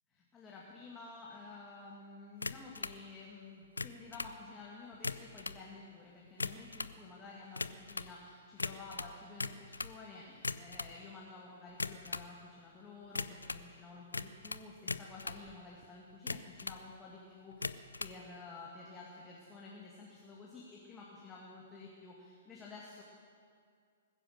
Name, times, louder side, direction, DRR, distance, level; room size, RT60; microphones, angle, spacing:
voice 1, 0.3-23.0, left 3 dB, 15° left, -4 dB, 2.2 m, -51 dB
sound 1, 2.4-3.0 3.6-4.4 4.9-5.6 6.2-7.0 7.5-8.1 8.6-10.0 10.3-10.9 11.7-12.3 13.1-13.7 14.1-15.4 16.1-16.8 17.5-18.2, left 3 dB, 75° left, 0.6 m, -39 dB
sound 2, 15.4-15.9, right 5 dB, 20° right, 1.3 m, -65 dB
21.0 x 10.0 x 6.6 m, 2.2 s
figure-of-eight pair, 115°, 0 cm